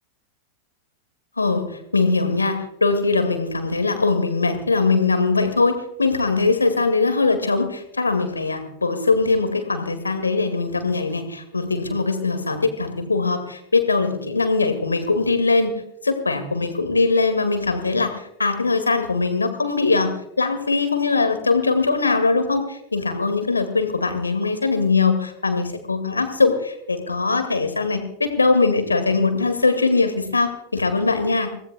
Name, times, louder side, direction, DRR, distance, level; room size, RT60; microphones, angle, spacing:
voice 1, 1.4-15.7 16.0-31.5, left 3 dB, 80° left, 8 dB, 2.2 m, -21 dB
25.0 x 18.0 x 2.3 m, 0.78 s
figure-of-eight pair, 90°, 0 cm